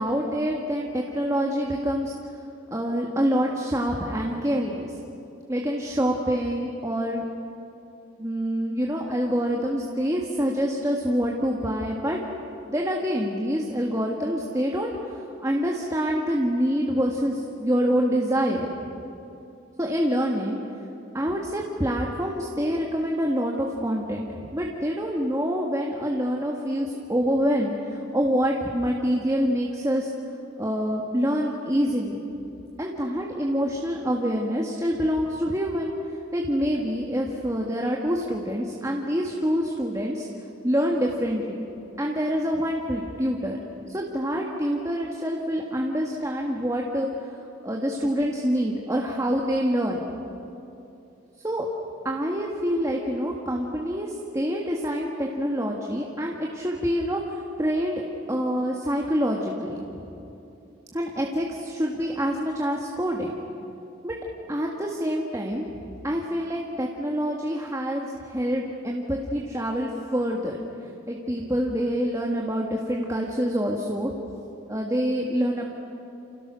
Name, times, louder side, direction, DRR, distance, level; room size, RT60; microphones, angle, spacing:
voice 1, 0.0-2.1 2.7-4.9 5.5-7.3 8.2-12.2 12.7-18.7 19.8-20.6 21.1-24.2 24.5-30.1 30.6-32.2 32.8-35.9 36.3-40.3 40.6-41.6 42.0-47.4 47.6-50.1 51.4-51.7 52.0-58.0 58.3-59.8 60.9-63.3 64.0-64.2 64.5-65.6 66.0-70.6 71.1-74.1 74.7-75.6, equal, 15° right, -1 dB, 1.9 m, -26 dB
29.0 x 28.5 x 6.4 m, 2.8 s
head